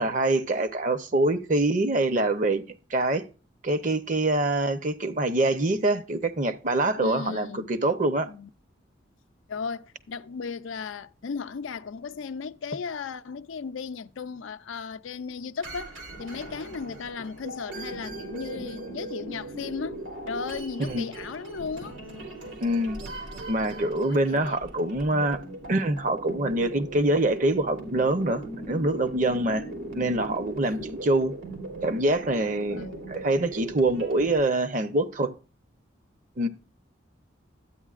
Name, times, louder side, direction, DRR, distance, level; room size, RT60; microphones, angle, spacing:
voice 1, 0.0-2.6 2.9-3.2 3.6-8.3 20.8-21.1 22.6-23.0 23.5-25.4 25.7-29.7 29.9-31.3 31.8-35.3 36.4-36.5, right 2 dB, 40° right, 0.7 m, -25 dB
voice 2, 7.0-7.7 8.2-8.5 9.5-22.0 24.1-24.6 32.7-33.1, left 5 dB, 90° left, 0.5 m, -36 dB
sound 1, 15.6-34.4, right 2 dB, 85° right, 3.0 m, -39 dB
12.5 x 8.9 x 2.4 m
head